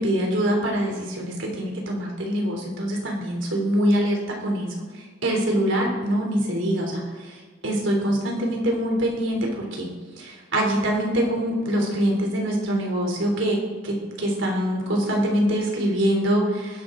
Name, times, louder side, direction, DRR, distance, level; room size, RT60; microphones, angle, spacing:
voice 1, 0.0-9.9 10.2-13.6 13.8-16.8, equal, 85° right, 0 dB, 3.4 m, -24 dB
20.5 x 11.5 x 3.9 m, 1.4 s
head